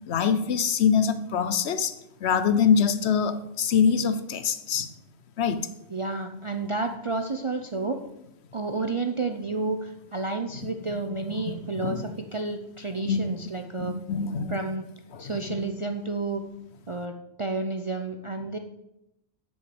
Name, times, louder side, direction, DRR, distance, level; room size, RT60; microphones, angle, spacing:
voice 1, 0.1-1.9 2.2-4.9 5.4-5.7 11.3-12.1 12.9-13.4 13.8-14.6 15.1-15.7, left 6 dB, 65° left, 12 dB, 0.9 m, -25 dB
voice 2, 5.9-8.0 8.5-13.9 14.5-14.9 15.2-16.4 16.9-18.6, right 3 dB, 40° right, 5 dB, 0.5 m, -31 dB
7.8 x 6.2 x 7.0 m, 0.86 s
omnidirectional pair, 1.3 m